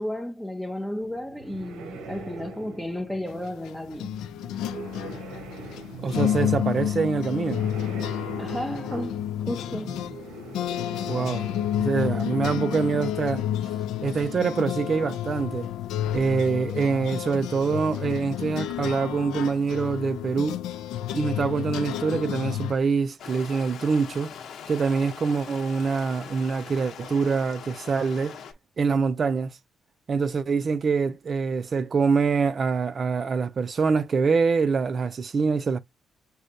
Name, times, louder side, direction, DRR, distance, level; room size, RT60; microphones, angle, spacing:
voice 1, 0.0-4.2 8.4-10.7, left 1 dB, 5° left, 0.5 m, -33 dB
sound 1, 1.0-12.8, right 4 dB, 90° right, 1.0 m, -43 dB
sound 2, 3.3-22.7, left 11 dB, 90° left, 0.4 m, -30 dB
voice 2, 6.0-7.7 11.1-11.5 11.8-13.5 14.0-15.7 16.1-20.6 21.1-24.3 24.7-28.4 28.8-29.6 30.1-35.8, right 5 dB, 45° right, 0.5 m, -25 dB
Stream, 23.2-28.5, left 7 dB, 70° left, 0.9 m, -42 dB
6.3 x 2.3 x 2.6 m
cardioid pair, 90°, 0 cm